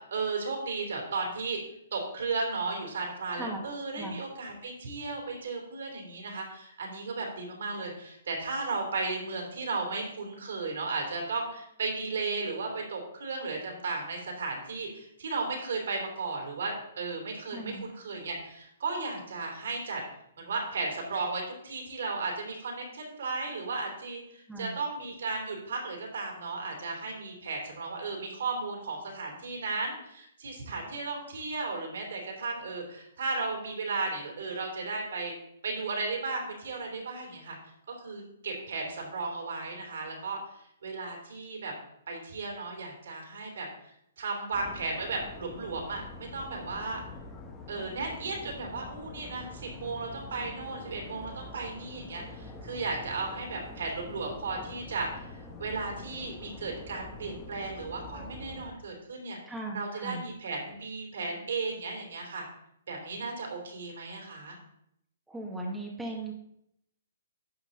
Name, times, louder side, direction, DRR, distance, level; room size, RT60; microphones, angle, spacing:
voice 1, 0.0-1.6 1.9-20.0 20.4-35.3 35.6-37.6 38.0-40.4 40.8-41.7 42.1-43.7 44.2-47.0 47.7-55.2 55.6-59.4 59.7-62.4 62.9-64.6, right 3 dB, 65° right, 1 dB, 3.2 m, -35 dB
voice 2, 17.5-17.9 24.5-24.7 59.5-60.2 65.3-66.3, right 2 dB, 5° right, -2 dB, 1.7 m, -37 dB
sound 1, 44.5-58.7, left 2 dB, 15° left, 1.4 m, -45 dB
11.0 x 6.1 x 3.9 m, 0.75 s
figure-of-eight pair, 125°, 0 cm